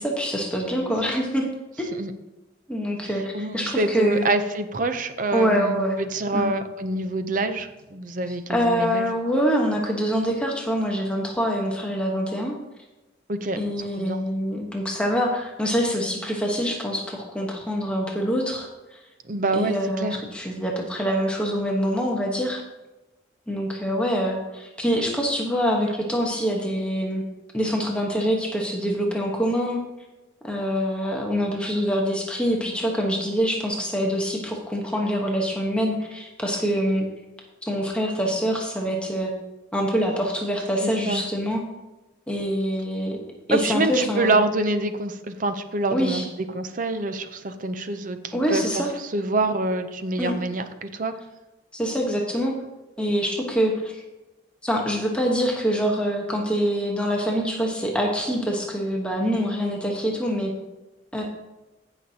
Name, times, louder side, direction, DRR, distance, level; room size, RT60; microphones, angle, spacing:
voice 1, 0.0-1.5 2.7-4.3 5.3-5.9 6.3-6.5 8.5-12.5 13.6-18.7 19.5-22.6 23.5-27.2 27.5-29.8 30.4-37.0 37.6-39.3 39.7-41.6 42.3-43.2 43.5-44.3 45.9-46.2 48.3-48.9 50.2-50.3 51.7-52.5 53.0-54.0 54.6-60.5 61.1-61.2, equal, 5° left, -1 dB, 1.1 m, -25 dB
voice 2, 3.3-9.1 13.3-13.6 13.9-14.2 19.3-20.2 40.8-41.2 43.5-48.9 49.1-51.1, right 2 dB, 45° right, 9 dB, 0.6 m, -26 dB
15.0 x 5.9 x 2.8 m, 1.1 s
head